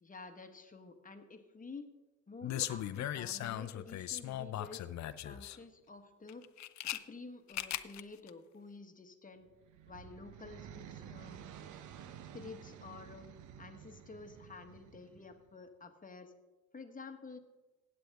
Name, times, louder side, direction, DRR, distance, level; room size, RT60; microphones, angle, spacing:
voice 1, 0.0-1.9 2.3-4.9 5.2-6.4 6.8-9.5 9.9-11.4 12.3-13.3 13.6-16.3 16.7-17.4, left 4 dB, 25° left, 7 dB, 1.3 m, -50 dB
sound 1, 2.4-5.6 6.3-7.0 7.5-8.0 8.3-8.4, left 13 dB, 65° left, 0.6 m, -38 dB
sound 2, 9.4-15.5, right 9 dB, 80° right, 0.8 m, -52 dB
15.5 x 8.8 x 3.5 m, 1.1 s
cardioid pair, 90°, 30 cm